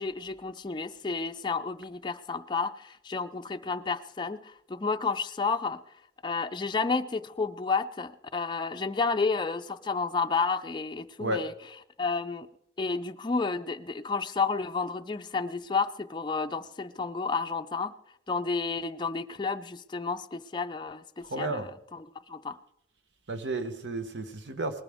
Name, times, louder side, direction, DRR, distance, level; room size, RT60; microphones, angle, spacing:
voice 1, 0.0-5.8 6.2-11.5 12.0-12.5 12.8-17.9 18.3-22.6, left 4 dB, 25° left, 0.4 m, -31 dB
voice 2, 21.2-21.7 23.3-24.8, right 2 dB, 80° right, 1.0 m, -32 dB
19.5 x 14.0 x 3.5 m
head